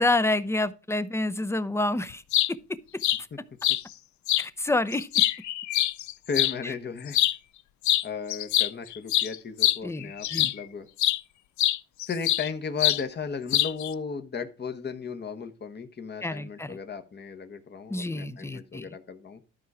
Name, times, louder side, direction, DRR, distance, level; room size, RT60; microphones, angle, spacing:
voice 1, 0.0-2.2 4.4-5.1 9.8-10.5 16.2-16.8 17.9-18.9, left 2 dB, 10° left, 0.7 m, -28 dB
sound 1, 2.1-2.5 3.0-3.2 3.6-3.8 4.3-4.4 4.9-6.5 7.1-7.4 7.8-8.0 8.3-10.6 11.0-11.2 11.6-12.5 12.8-13.0 13.5-13.9, left 14 dB, 70° left, 0.6 m, -24 dB
voice 2, 6.3-7.2 8.0-10.3 10.5-10.9 12.1-19.4, left 5 dB, 35° left, 1.1 m, -35 dB
12.5 x 4.7 x 4.8 m
cardioid pair, 90°, 30 cm